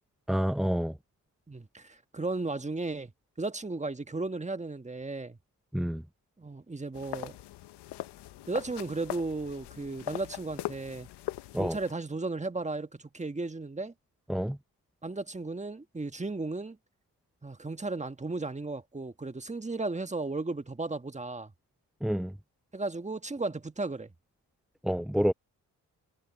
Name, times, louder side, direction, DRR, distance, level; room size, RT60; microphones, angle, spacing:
voice 1, 0.3-0.9 5.7-6.0 11.5-11.7 14.3-14.6 22.0-22.3 24.8-25.3, equal, ahead, 0.6 m, -28 dB
voice 2, 1.5-3.1 3.4-5.4 6.4-7.4 8.5-11.1 11.5-13.9 15.0-16.8 17.4-21.5 22.7-24.1, right 3 dB, 15° right, 1.5 m, -35 dB
sound 1, 6.9-11.9, left 15 dB, 90° left, 0.9 m, -41 dB
supercardioid pair, 55°, 39 cm